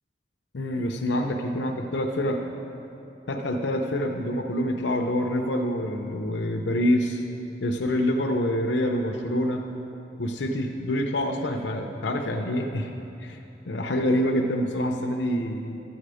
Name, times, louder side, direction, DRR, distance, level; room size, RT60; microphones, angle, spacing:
voice 1, 0.5-2.4 3.3-7.2 7.6-9.6 10.2-12.9 13.2-13.4 13.7-15.8, left 1 dB, 85° left, 2 dB, 0.7 m, -26 dB
12.5 x 8.0 x 4.9 m, 2.9 s
head